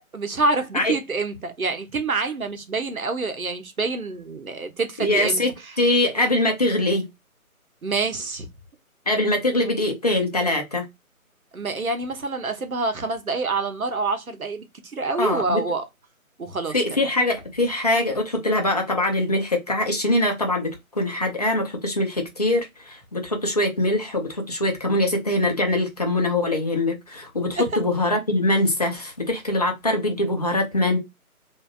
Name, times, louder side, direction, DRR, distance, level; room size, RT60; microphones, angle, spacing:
voice 1, 0.1-5.7 7.8-8.5 11.5-15.8 16.4-16.7 27.6-27.7, right 3 dB, 70° right, 1.1 m, -27 dB
voice 2, 5.0-5.5 5.8-7.0 9.1-10.9 15.2-15.6 16.7-31.0, left 1 dB, 25° left, 0.8 m, -23 dB
3.4 x 2.7 x 2.4 m
figure-of-eight pair, 155°, 43 cm